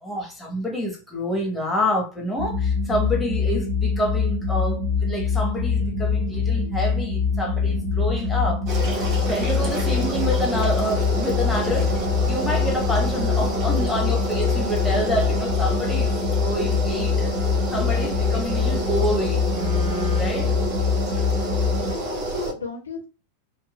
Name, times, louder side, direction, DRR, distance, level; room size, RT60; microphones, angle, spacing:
voice 1, 0.0-8.9 9.3-12.0 12.3-19.4 19.7-19.8 20.1-20.5 21.2-21.3, equal, 5° left, 1.4 m, -28 dB
sound 1, 2.4-21.9, left 5 dB, 10° right, 1.8 m, -24 dB
sound 2, 5.6-6.6 7.6-8.6 9.6-10.6 11.6-12.6, left 1 dB, 55° right, 1.8 m, -39 dB
sound 3, 8.7-22.5, right 1 dB, 35° right, 1.0 m, -29 dB
voice 2, 13.1-14.2 14.8-15.0 21.9-23.0, left 4 dB, 75° left, 1.2 m, -36 dB
4.5 x 2.4 x 2.5 m
figure-of-eight pair, 90°, 0 cm